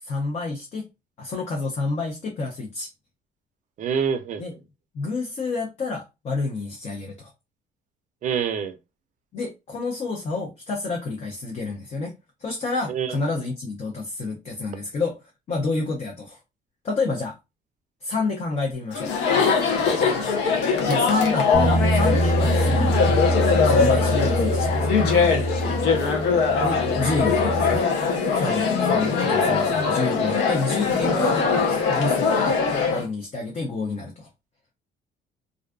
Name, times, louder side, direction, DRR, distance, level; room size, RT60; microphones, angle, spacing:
voice 1, 0.0-0.9 1.2-2.9 4.4-4.5 4.9-7.3 9.3-12.1 12.4-15.2 15.5-16.4 16.8-17.4 18.0-19.1 20.9-23.2 23.6-25.0 26.6-27.9 28.3-31.4 31.7-32.6 32.9-34.3, left 3 dB, 40° left, 0.6 m, -29 dB
voice 2, 3.8-4.4 8.2-8.7 12.9-13.2 19.8-20.0 25.6-25.8 28.4-28.6, right 7 dB, 50° right, 0.4 m, -27 dB
Chatter, 18.9-33.0, left 5 dB, 85° left, 0.7 m, -22 dB
sound 1, 21.5-27.8, right 1 dB, 5° left, 1.1 m, -25 dB
2.5 x 2.3 x 2.2 m
cardioid pair, 110°, 17 cm